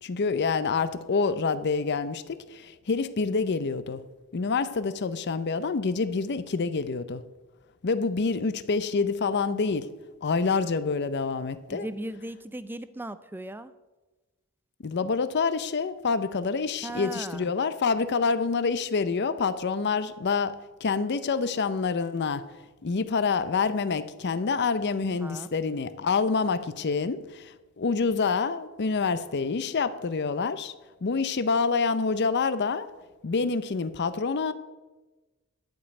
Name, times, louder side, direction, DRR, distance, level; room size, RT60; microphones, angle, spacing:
voice 1, 0.0-4.0 4.3-7.2 7.8-9.9 10.2-11.9 14.8-22.5 22.8-30.7 31.0-32.9 33.2-34.5, left 4 dB, 50° left, 0.6 m, -27 dB
voice 2, 11.7-13.7 16.8-17.5 25.2-25.5, right 1 dB, 10° right, 0.4 m, -37 dB
11.5 x 5.2 x 8.1 m
head